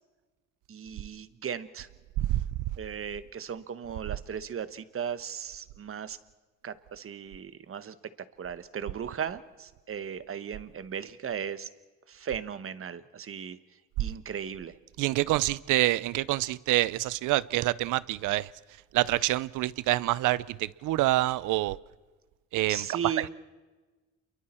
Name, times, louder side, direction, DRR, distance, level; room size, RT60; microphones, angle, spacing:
voice 1, 0.7-1.9 2.8-6.2 6.6-7.9 8.4-11.7 12.1-13.6 14.0-14.7 22.7-23.3, right 8 dB, 45° right, 1.2 m, -36 dB
voice 2, 15.0-18.5 18.9-21.8 22.5-22.8, right 17 dB, 90° right, 0.6 m, -26 dB
29.0 x 23.0 x 4.4 m
cardioid pair, 90°, 30 cm